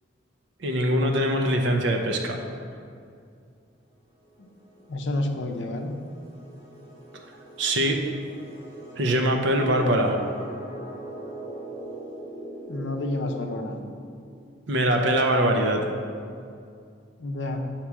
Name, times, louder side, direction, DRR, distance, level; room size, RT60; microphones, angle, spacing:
voice 1, 0.6-2.4 7.6-8.0 9.0-10.2 14.7-15.9, right 1 dB, 70° right, 3 dB, 0.6 m, -22 dB
sound 1, 4.2-14.7, right 1 dB, 20° right, 1.2 m, -42 dB
voice 2, 4.9-5.9 12.7-13.8 17.2-17.6, left 2 dB, 65° left, 3 dB, 0.5 m, -29 dB
7.1 x 3.0 x 4.7 m, 2.4 s
head